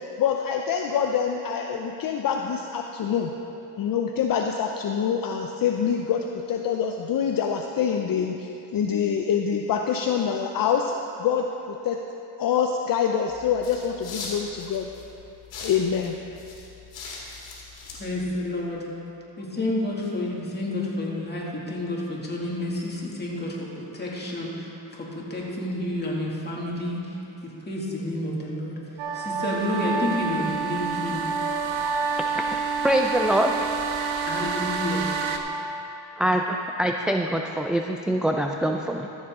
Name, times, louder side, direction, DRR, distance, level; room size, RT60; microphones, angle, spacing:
voice 1, 0.2-3.3 3.8-12.0 12.4-14.9 15.6-16.2, left 7 dB, 50° left, 3 dB, 0.6 m, -25 dB
sound 1, 13.3-18.8, left 3 dB, 75° left, 2.2 m, -41 dB
voice 2, 18.0-18.9 19.4-28.8 29.1-31.2 34.3-35.1, left 1 dB, 20° left, -4 dB, 2.3 m, -30 dB
sound 2, 29.0-35.4, right 5 dB, 85° right, 0.9 m, -28 dB
voice 3, 32.8-33.6 36.2-39.1, right 1 dB, ahead, 2 dB, 0.3 m, -24 dB
14.0 x 7.3 x 3.7 m, 2.9 s
cardioid pair, 85°, 44 cm